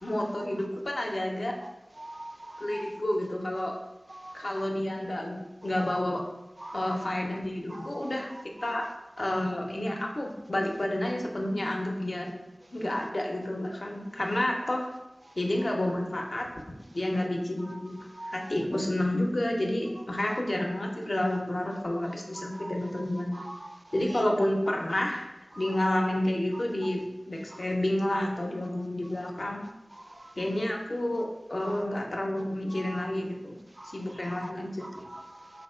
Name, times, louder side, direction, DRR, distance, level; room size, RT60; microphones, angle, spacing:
voice 1, 0.0-1.6 2.6-3.7 4.3-6.2 6.7-8.3 8.6-8.8 9.2-12.3 12.7-14.9 15.4-16.4 16.9-18.0 18.3-23.4 23.9-25.3 25.6-29.6 30.4-33.6 33.9-35.0, left 1 dB, 75° left, 0 dB, 0.6 m, -30 dB
voice 2, 2.0-2.9 4.1-4.4 6.6-6.8 7.7-8.1 8.6-8.9 18.2-18.3 22.4-23.0 23.3-23.7 26.8-26.9 30.1-30.2 32.8-33.0 33.8-33.9 34.4-34.5 34.8-35.6, right 1 dB, 35° right, 7 dB, 0.3 m, -43 dB
3.6 x 2.7 x 4.3 m, 0.97 s
wide cardioid pair, 40°, 0 cm